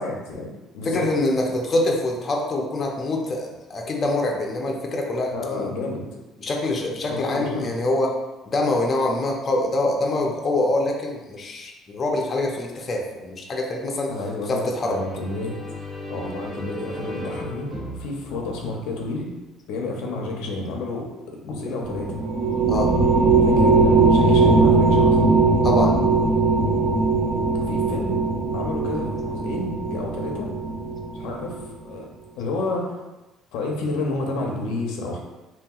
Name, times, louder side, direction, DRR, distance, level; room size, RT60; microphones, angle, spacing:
voice 1, 0.0-1.1 5.3-6.1 7.1-7.7 14.1-15.6 16.1-19.3 19.7-22.2 23.4-25.3 27.7-28.2 28.5-30.5 31.1-31.6 31.8-32.1 32.4-33.0 33.5-35.2, left 2 dB, 90° left, 0 dB, 0.5 m, -30 dB
voice 2, 0.8-5.7 6.4-8.2 8.5-14.1 14.5-15.0 22.7-22.9 25.6-26.0, left 2 dB, 30° left, 0 dB, 0.4 m, -25 dB
sound 1, 14.6-19.4, left 1 dB, 25° right, 0.8 m, -36 dB
sound 2, 21.8-31.6, right 3 dB, 50° right, 0.5 m, -19 dB
2.9 x 2.8 x 2.3 m, 1.1 s
cardioid pair, 125°, 0 cm